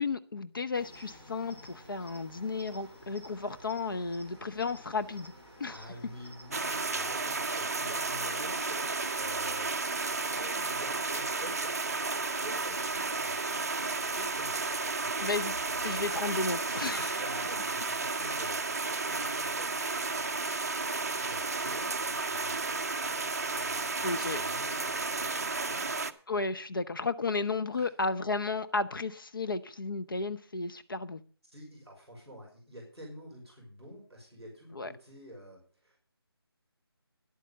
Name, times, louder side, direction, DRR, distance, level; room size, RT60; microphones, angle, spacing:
voice 1, 0.0-5.3 5.6-5.8 15.2-15.6 15.8-17.2 24.0-24.4 26.3-31.2 34.7-34.9, left 3 dB, 55° left, 0.8 m, -33 dB
Cricket, 0.7-7.0, equal, 25° left, 3.1 m, -52 dB
voice 2, 5.7-11.7 12.3-15.2 16.8-18.8 19.1-19.8 20.9-22.9 23.5-25.9 27.7-27.9 31.5-36.0, equal, 5° left, 4.5 m, -49 dB
sound 1, 6.5-26.1, right 3 dB, 40° right, 0.6 m, -32 dB
11.0 x 8.5 x 6.6 m
figure-of-eight pair, 175°, 13 cm